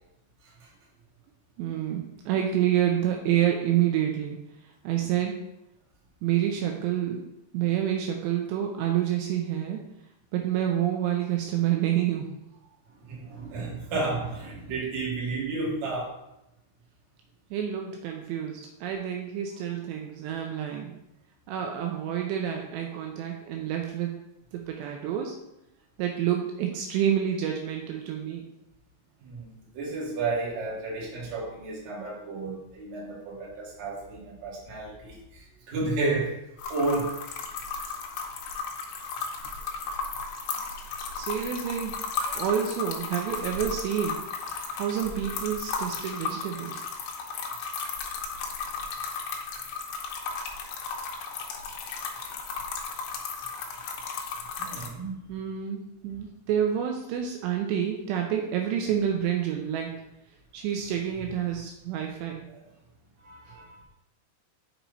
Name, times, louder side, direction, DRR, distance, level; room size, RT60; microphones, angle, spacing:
voice 1, 1.6-4.4 4.8-5.3 6.2-7.2 7.5-9.8 10.3-12.3 17.5-20.9 21.5-24.1 24.5-25.4 26.0-28.5 41.2-41.9 42.4-44.2 44.5-46.8 55.3-59.9 60.5-62.5, right 10 dB, 80° right, 2 dB, 2.8 m, -28 dB
voice 2, 13.1-16.1 29.2-29.5 29.7-36.3 36.7-37.1 42.1-42.5 54.6-55.1 63.2-63.8, right 3 dB, 50° right, -5 dB, 2.5 m, -32 dB
sound 1, 36.6-54.9, left 5 dB, 75° left, 2.2 m, -35 dB
6.8 x 4.6 x 3.9 m, 0.85 s
omnidirectional pair, 5.0 m